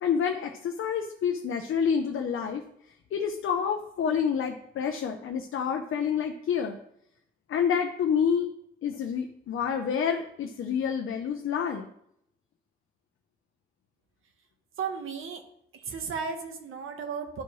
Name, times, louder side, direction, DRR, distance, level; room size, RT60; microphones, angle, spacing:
voice 1, 0.0-2.6 3.1-6.8 7.5-8.5 8.8-11.9, left 7 dB, 80° left, 4 dB, 0.6 m, -28 dB
voice 2, 14.8-15.4 15.7-17.4, right 6 dB, 90° right, 6 dB, 1.0 m, -34 dB
11.0 x 4.5 x 3.1 m, 0.73 s
cardioid pair, 60°, 21 cm